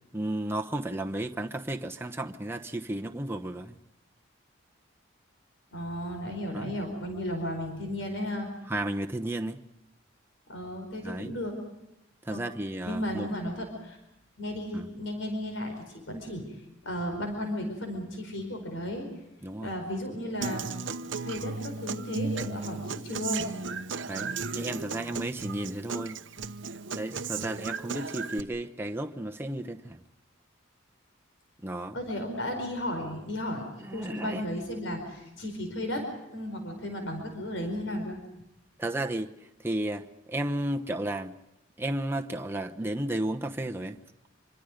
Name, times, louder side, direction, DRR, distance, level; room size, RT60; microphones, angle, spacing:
voice 1, 0.1-3.8 6.5-6.7 8.7-9.6 11.0-11.3 12.2-13.3 14.7-14.9 19.4-19.7 24.0-26.2 26.9-30.0 31.6-32.0 33.8-34.4 38.8-39.3 39.6-41.3 41.8-44.0, right 1 dB, 10° right, 0.9 m, -33 dB
voice 2, 5.7-8.5 10.5-11.5 12.3-12.4 12.8-14.0 14.4-16.4 16.8-19.1 19.6-20.7 21.0-23.5 31.9-36.1 36.3-38.2, left 1 dB, 70° left, 4.7 m, -34 dB
Human voice / Acoustic guitar, 20.4-28.4, right 4 dB, 65° right, 0.8 m, -35 dB
26.0 x 25.5 x 5.1 m
head